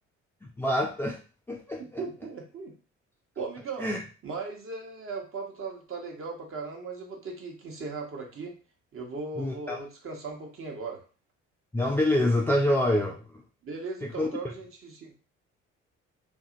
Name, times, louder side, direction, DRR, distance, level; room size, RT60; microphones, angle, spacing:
voice 1, 0.6-1.2 1.5-2.0 3.8-4.0 9.4-9.8 11.7-13.2 14.2-14.3, left 1 dB, 5° left, 0 dB, 0.3 m, -26 dB
voice 2, 1.8-2.7 3.4-3.9 4.2-8.6 8.9-11.0 13.6-15.2, right 4 dB, 40° right, 1 dB, 1.0 m, -38 dB
2.7 x 2.6 x 2.5 m, 0.36 s
figure-of-eight pair, 50°, 35 cm